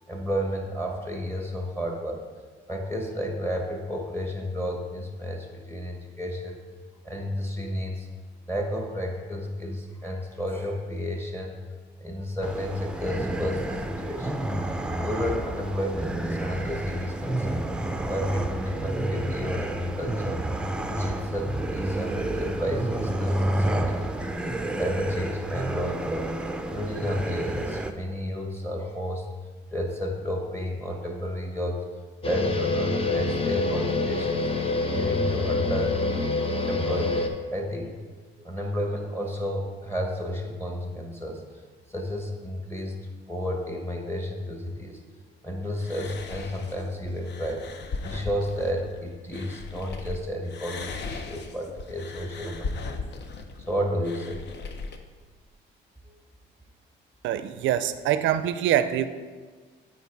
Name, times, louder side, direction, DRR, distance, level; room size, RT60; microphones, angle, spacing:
voice 1, 0.0-2.3 2.7-6.6 7.0-8.1 8.5-11.5 12.0-14.4 15.0-17.6 18.1-20.4 20.9-24.3 24.8-26.3 26.7-29.3 29.7-31.8 32.2-34.4 34.9-36.0 36.7-38.0 38.4-41.4 41.9-43.0 43.3-45.0 45.4-47.7 48.0-53.0 53.7-54.4 56.1-56.2, equal, 10° left, 2 dB, 1.1 m, -31 dB
sound 1, 12.4-27.9, right 1 dB, 5° right, 0.5 m, -30 dB
sound 2, 32.2-37.3, left 2 dB, 30° left, 0.8 m, -26 dB
sound 3, 45.8-50.2 50.5-55.0, left 4 dB, 60° left, 0.7 m, -37 dB
voice 2, 57.2-59.1, right 11 dB, 75° right, 12 dB, 0.4 m, -24 dB
8.4 x 4.6 x 4.6 m, 1.5 s
cardioid pair, 90°, 20 cm